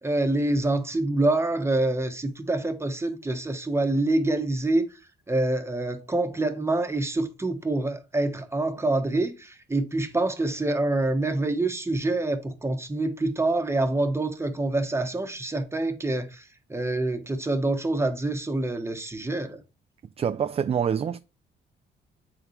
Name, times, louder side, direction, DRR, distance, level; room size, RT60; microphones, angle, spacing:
voice 1, 0.0-4.8 5.3-16.4 16.7-19.6, right 2 dB, 15° right, 1.1 m, -26 dB
voice 2, 20.2-21.2, right 7 dB, 30° right, 0.4 m, -26 dB
8.0 x 3.7 x 3.2 m
cardioid pair, 90°, 20 cm